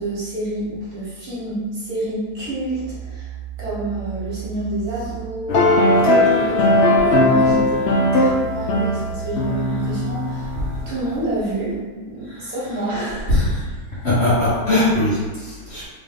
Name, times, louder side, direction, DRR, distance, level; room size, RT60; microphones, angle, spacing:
voice 1, 0.0-3.3 3.6-5.6 6.2-10.5 10.9-13.3 13.6-14.1 15.6-15.8, right 2 dB, 60° right, -8 dB, 1.6 m, -28 dB
sound 1, 2.4-6.3 6.7-11.2, right 10 dB, 85° right, 1.3 m, -35 dB
sound 2, 5.5-10.9, left 1 dB, 85° left, 0.5 m, -18 dB
voice 2, 14.0-15.9, left 1 dB, 40° left, -11 dB, 1.5 m, -19 dB
3.6 x 2.5 x 3.7 m, 1.4 s
omnidirectional pair, 1.8 m